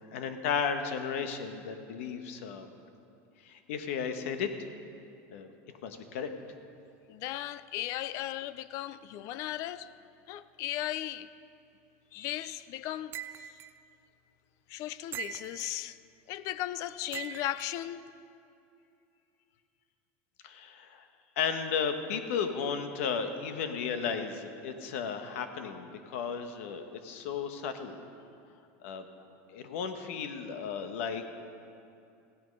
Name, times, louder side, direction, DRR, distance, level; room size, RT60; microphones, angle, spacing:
voice 1, 0.0-2.7 3.4-4.5 5.3-5.5 5.8-6.3 20.4-21.1 21.4-28.0 28.8-29.0 29.5-31.3, left 6 dB, 85° left, 1.1 m, -34 dB
voice 2, 7.1-9.9 10.3-11.3 12.1-13.6 14.7-16.0 16.3-18.1, left 13 dB, 50° left, 0.4 m, -37 dB
sound 1, 13.1-13.7 15.1-15.8 17.1-17.7, right 10 dB, 30° right, 0.3 m, -41 dB
16.0 x 9.6 x 5.3 m
supercardioid pair, 155°, 7 cm